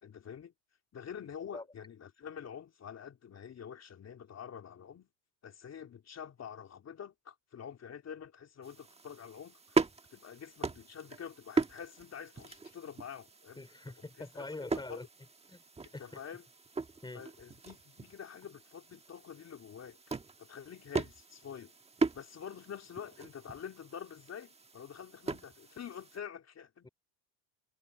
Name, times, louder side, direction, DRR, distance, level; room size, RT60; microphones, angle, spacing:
voice 1, 0.0-0.5 0.9-5.1 5.4-9.8 10.1-13.6 14.3-14.5 14.7-15.0 16.0-16.4 17.1-20.0 20.4-21.7 22.1-26.9, left 8 dB, 35° left, 3.5 m, -47 dB
sound 1, 8.6-26.2, right 4 dB, 15° right, 1.3 m, -39 dB
voice 2, 13.6-15.1 15.5-15.6 15.9-16.2 17.0-17.2 18.9-19.0 26.8-26.9, left 2 dB, 10° left, 4.9 m, -44 dB
supercardioid pair, 120°, 45 cm